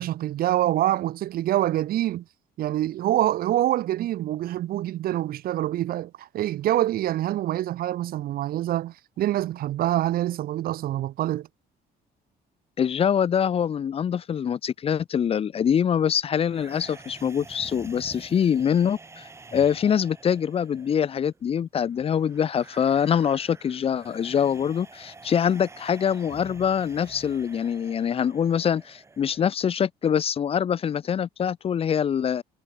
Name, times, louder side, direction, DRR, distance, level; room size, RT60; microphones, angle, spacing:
voice 1, 0.0-2.2 2.6-11.5, right 13 dB, 55° right, 1.6 m, -25 dB
voice 2, 12.8-32.4, left 8 dB, 35° left, 1.3 m, -24 dB
sound 1, 16.5-29.5, right 3 dB, 15° right, 7.9 m, -48 dB
cardioid pair, 165°, 18 cm